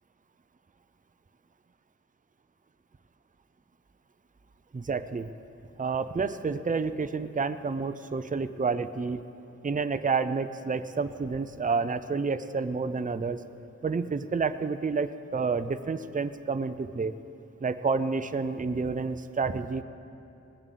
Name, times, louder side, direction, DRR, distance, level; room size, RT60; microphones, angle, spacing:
voice 1, 4.7-5.3 5.8-9.2 9.6-13.4 13.8-17.1 17.6-19.8, right 4 dB, 25° right, 11 dB, 0.5 m, -29 dB
19.0 x 7.3 x 8.5 m, 2.7 s
wide cardioid pair, 65°, 30 cm